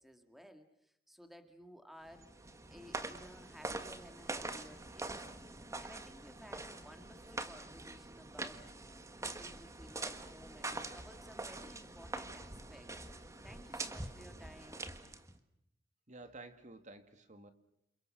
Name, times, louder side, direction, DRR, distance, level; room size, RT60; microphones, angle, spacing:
voice 1, 0.0-2.3 2.7-5.3 5.8-8.7 9.2-13.0 13.2-14.9, equal, ahead, 7 dB, 1.9 m, -56 dB
sound 1, 2.1-15.4, right 2 dB, 15° right, 1.6 m, -44 dB
voice 2, 16.1-17.5, right 2 dB, 40° right, 8 dB, 2.1 m, -52 dB
29.5 x 28.5 x 6.4 m, 0.77 s
head